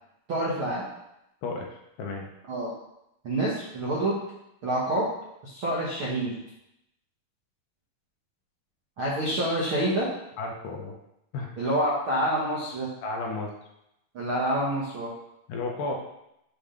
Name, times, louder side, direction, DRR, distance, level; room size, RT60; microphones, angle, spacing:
voice 1, 0.3-0.9 2.5-2.7 3.2-4.2 4.6-5.1 5.4-6.4 9.0-10.1 11.6-12.9 14.1-15.1, right 1 dB, 70° right, -6 dB, 1.2 m, -27 dB
voice 2, 10.4-11.0 11.3-11.5 13.0-13.5 15.5-16.0, left 3 dB, 75° left, 0 dB, 2.3 m, -32 dB
7.0 x 3.1 x 5.1 m, 0.83 s
omnidirectional pair, 4.1 m